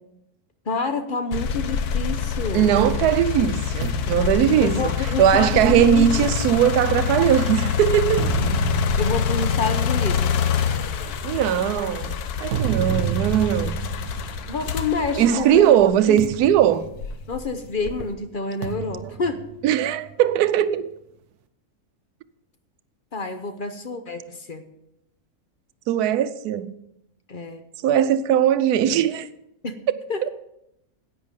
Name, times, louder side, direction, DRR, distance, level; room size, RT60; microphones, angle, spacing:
voice 1, 0.7-2.7 4.6-6.3 9.0-10.4 14.4-15.6 16.1-16.3 17.3-19.4 23.1-24.6 27.3-27.6 29.6-29.8 30.1-30.2, left 4 dB, 45° left, 0.7 m, -28 dB
sound 1, 1.3-16.3 16.9-18.1, left 7 dB, 80° left, 1.3 m, -26 dB
voice 2, 2.5-4.9 5.2-8.3 11.2-12.2 12.4-13.8 15.2-16.9 19.6-20.9 25.9-26.7 27.8-29.3, right 10 dB, 85° right, 1.1 m, -19 dB
sound 2, 3.8-7.4 7.9-15.3 15.6-15.8 16.2-17.8 18.6-20.4, right 9 dB, 65° right, 0.7 m, -32 dB
10.5 x 8.9 x 5.2 m
omnidirectional pair, 1.6 m